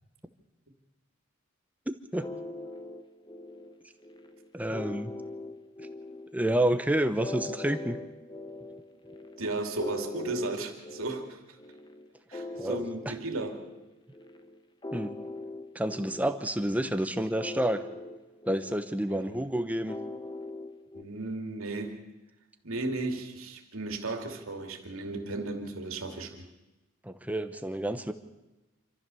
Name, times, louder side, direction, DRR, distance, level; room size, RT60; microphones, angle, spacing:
sound 1, 2.2-21.0, left 2 dB, 20° left, 1.0 m, -42 dB
voice 1, 4.5-5.1 5.8-5.9 6.3-8.0 12.6-12.8 13.1-13.2 14.9-15.1 15.7-17.8 18.5-19.9 27.0-28.1, right 1 dB, 5° right, 9 dB, 0.9 m, -29 dB
voice 2, 9.4-11.4 12.3-13.6 19.1-19.3 20.9-22.0 22.6-26.5, right 2 dB, 85° right, 4 dB, 2.7 m, -35 dB
26.0 x 14.0 x 7.0 m, 1.0 s
head